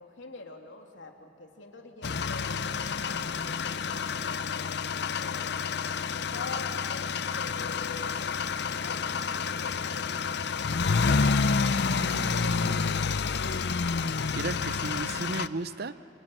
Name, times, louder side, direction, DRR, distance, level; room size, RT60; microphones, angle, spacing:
voice 1, 0.0-5.5 6.3-10.8 11.7-13.6, left 3 dB, 90° left, 3 dB, 2.8 m, -46 dB
sound 1, 2.0-15.5, left 5 dB, 65° left, 0.7 m, -29 dB
voice 2, 11.9-13.0 14.3-16.0, right 3 dB, 60° right, 14 dB, 0.8 m, -36 dB
26.5 x 23.5 x 9.0 m, 2.6 s
head